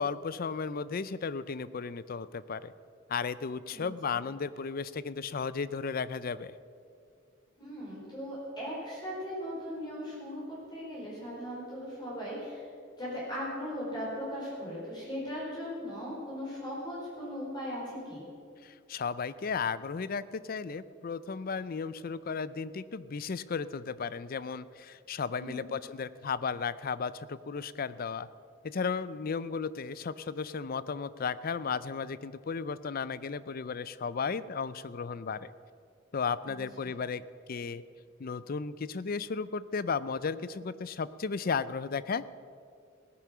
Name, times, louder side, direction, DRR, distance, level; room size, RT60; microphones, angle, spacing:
voice 1, 0.0-2.7 3.1-6.5 18.6-28.3 28.6-35.5 36.1-37.2 37.5-37.8 38.2-42.3, left 5 dB, 45° left, 16 dB, 0.5 m, -34 dB
voice 2, 7.6-12.6 13.0-18.3 25.4-25.7 36.4-36.6, equal, 20° left, -7 dB, 4.7 m, -38 dB
17.5 x 10.0 x 6.1 m, 2.3 s
head